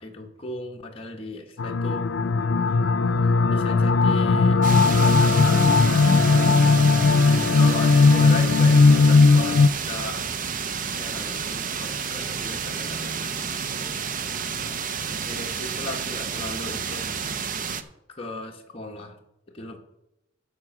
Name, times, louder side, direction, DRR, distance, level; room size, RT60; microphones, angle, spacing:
voice 1, 0.0-2.1 2.7-2.8 3.5-6.8 7.2-10.2 11.0-14.0 15.3-17.1 18.1-19.2 19.5-19.8, left 2 dB, 30° left, 1 dB, 1.4 m, -37 dB
sound 1, 1.6-9.7, left 4 dB, 90° left, 0.5 m, -18 dB
sound 2, 4.6-17.8, right 6 dB, 45° right, 0.6 m, -30 dB
9.6 x 6.7 x 6.1 m, 0.88 s
head